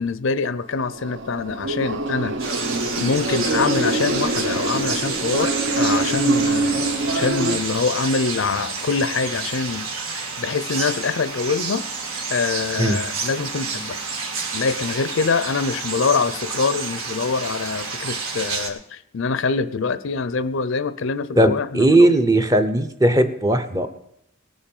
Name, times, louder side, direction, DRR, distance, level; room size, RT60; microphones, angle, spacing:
voice 1, 0.0-2.3 3.0-11.8 12.3-14.0 14.5-22.1, left 4 dB, 60° left, 14 dB, 0.5 m, -24 dB
sound 1, 0.7-7.6, right 2 dB, 55° right, 0.8 m, -24 dB
sound 2, 2.4-18.7, right 4 dB, 80° right, 1.7 m, -29 dB
voice 2, 21.4-23.9, right 1 dB, 15° right, 9 dB, 0.7 m, -17 dB
19.0 x 7.3 x 5.3 m, 0.79 s
head